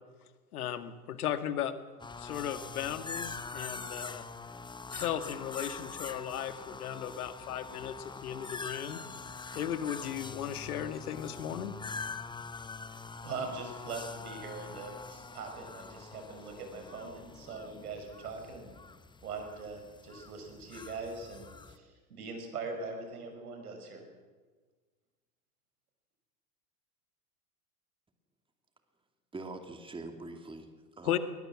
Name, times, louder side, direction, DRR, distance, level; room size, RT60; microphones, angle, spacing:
voice 1, 0.5-1.7 2.2-4.2 4.9-9.0 9.5-11.8 31.0-31.2, left 10 dB, 75° left, 10 dB, 1.9 m, -36 dB
sound 1, 2.0-21.8, left 4 dB, 10° left, 1.0 m, -44 dB
voice 2, 13.2-18.7 19.2-24.1, right 4 dB, 80° right, 5 dB, 6.2 m, -42 dB
voice 3, 29.3-31.2, right 2 dB, 10° right, 5 dB, 2.7 m, -44 dB
21.0 x 20.5 x 7.4 m, 1.4 s
hypercardioid pair, 95°, 45 cm